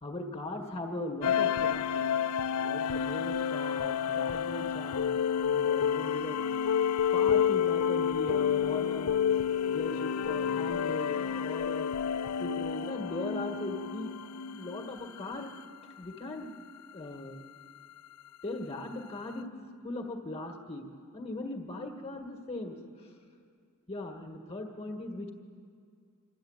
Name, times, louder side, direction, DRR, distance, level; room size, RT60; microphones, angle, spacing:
voice 1, 0.0-2.0 2.6-6.4 7.1-9.2 9.7-11.9 12.4-14.2 14.5-15.5 16.0-16.5 16.9-17.4 18.4-19.5 19.8-20.8 21.1-23.1 23.9-25.3, left 2 dB, 25° left, 3 dB, 1.8 m, -39 dB
sound 1, 1.2-15.3, left 8 dB, 90° left, 0.5 m, -29 dB
24.5 x 13.0 x 9.0 m, 2.2 s
head